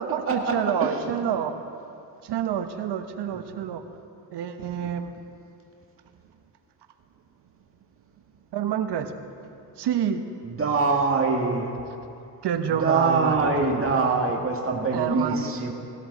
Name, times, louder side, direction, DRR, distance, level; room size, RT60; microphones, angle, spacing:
voice 1, 0.0-1.6 2.2-3.8 4.3-5.2 8.5-9.1 9.8-10.2 12.4-13.9 14.9-15.5, right 8 dB, 70° right, 8 dB, 1.2 m, -28 dB
voice 2, 10.4-11.7 12.7-15.7, right 4 dB, 30° right, 0 dB, 1.9 m, -24 dB
18.0 x 13.5 x 4.1 m, 2.7 s
supercardioid pair, 75°, 43 cm